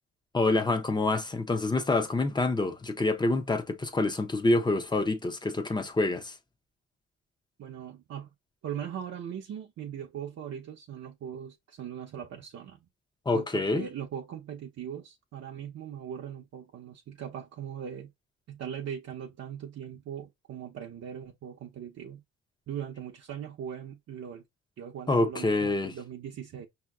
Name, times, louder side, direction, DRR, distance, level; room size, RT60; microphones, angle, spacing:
voice 1, 0.3-6.3 13.3-13.9 25.1-25.9, left 2 dB, 15° left, 0.7 m, -27 dB
voice 2, 7.6-8.3 8.6-12.8 13.3-18.1 18.5-22.2 22.7-24.4 24.8-26.7, right 9 dB, 55° right, 0.7 m, -40 dB
5.6 x 2.8 x 2.3 m
cardioid pair, 90°, 30 cm